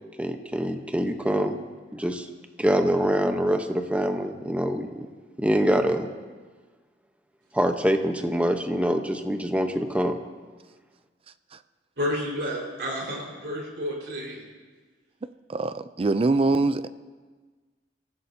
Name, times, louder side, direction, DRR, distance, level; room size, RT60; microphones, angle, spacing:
voice 1, 0.2-1.6 1.9-2.3 2.6-5.0 5.4-6.1 7.5-10.2, equal, 10° right, 6 dB, 0.9 m, -24 dB
voice 2, 12.0-14.4, equal, 70° right, -2 dB, 4.6 m, -30 dB
voice 3, 15.2-16.9, right 3 dB, 30° right, 12 dB, 0.4 m, -24 dB
25.5 x 15.5 x 2.8 m, 1.4 s
head